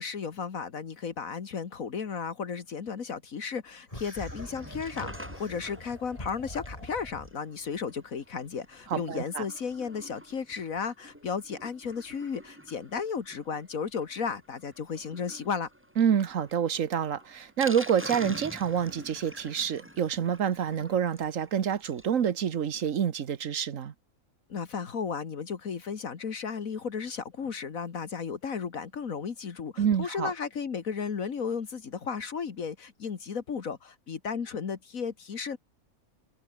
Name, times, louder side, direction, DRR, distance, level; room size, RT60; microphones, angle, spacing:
voice 1, 0.0-15.7 24.5-35.6, left 6 dB, 70° left, 2.0 m, -34 dB
sound 1, 3.9-7.3, left 1 dB, 25° left, 5.6 m, -43 dB
Sink (filling or washing), 4.1-22.2 22.5-22.6 22.8-22.9 23.3-23.4, equal, 10° right, 7.5 m, -47 dB
voice 2, 8.9-9.4 16.0-23.9 29.8-30.3, right 8 dB, 65° right, 1.5 m, -27 dB
omnidirectional pair, 1.5 m